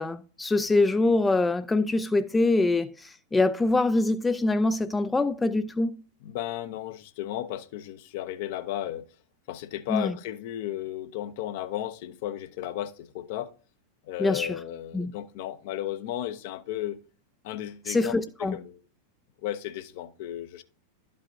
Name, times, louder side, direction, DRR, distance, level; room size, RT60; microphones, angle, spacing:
voice 1, 0.0-5.9 9.9-10.1 14.2-14.6 14.9-15.1 17.9-18.6, left 2 dB, 10° left, 0.3 m, -24 dB
voice 2, 6.2-9.1 9.5-13.5 14.1-17.0 17.4-18.8 19.4-20.6, left 12 dB, 50° left, 0.7 m, -34 dB
12.0 x 5.5 x 2.7 m
figure-of-eight pair, 90°, 0 cm